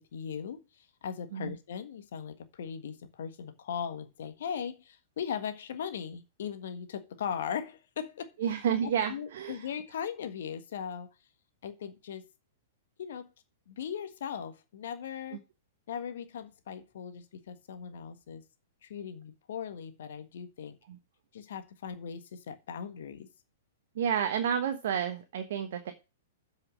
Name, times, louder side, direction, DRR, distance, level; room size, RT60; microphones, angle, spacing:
voice 1, 0.0-8.3 8.8-11.1 11.6-12.3 13.0-13.3 13.7-15.4 15.9-18.4 18.8-20.8 21.3-23.3, left 7 dB, 65° left, 1.5 m, -39 dB
voice 2, 8.4-9.7 20.9-21.0 23.9-25.9, right 8 dB, 60° right, 1.2 m, -30 dB
8.0 x 5.7 x 7.3 m
figure-of-eight pair, 110°, 0 cm